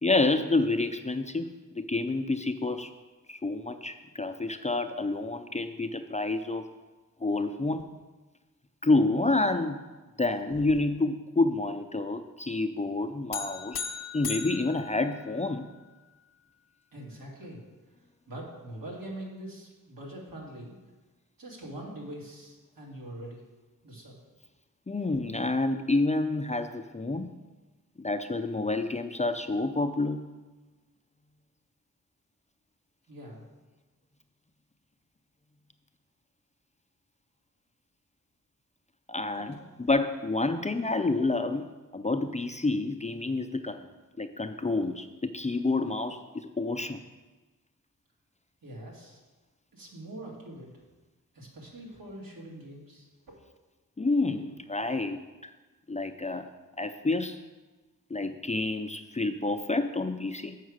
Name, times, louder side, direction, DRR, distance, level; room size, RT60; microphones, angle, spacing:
voice 1, 0.0-2.9 3.3-6.7 7.2-7.8 8.8-9.8 10.2-13.8 14.1-15.7 23.2-23.3 24.9-27.3 28.0-30.2 39.1-39.6 39.9-41.7 41.9-43.9 44.2-47.0 54.0-55.5 55.9-56.5 56.8-57.4 58.1-60.6, left 2 dB, 20° left, 7 dB, 0.5 m, -28 dB
buzzer boardgame three times, 13.3-15.8, left 6 dB, 70° left, 0.7 m, -38 dB
voice 2, 16.9-17.6 18.3-20.7 21.4-23.4 23.8-24.2 33.1-33.5 39.3-39.5 48.6-49.2 49.7-50.7 51.3-53.4, right 1 dB, 80° right, -3 dB, 2.1 m, -43 dB
7.3 x 4.8 x 6.3 m, 1.2 s
cardioid pair, 50°, 34 cm